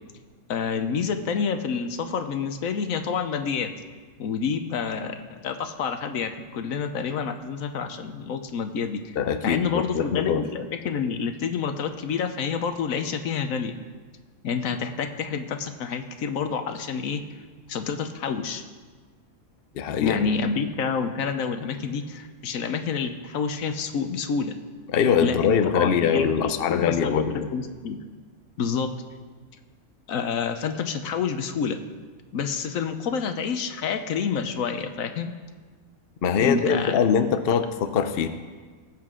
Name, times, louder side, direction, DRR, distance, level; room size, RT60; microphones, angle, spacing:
voice 1, 0.5-3.7 4.2-9.1 9.4-13.8 14.4-17.2 17.7-18.6 20.0-24.6 25.2-28.0 28.6-28.9 30.1-31.8 32.3-35.3 36.4-37.0, left 6 dB, 70° left, 8 dB, 1.2 m, -28 dB
voice 2, 9.2-10.4 19.7-20.3 24.9-27.5 36.2-38.3, left 7 dB, 55° left, 9 dB, 0.7 m, -23 dB
19.0 x 7.7 x 3.7 m, 1.4 s
omnidirectional pair, 1.5 m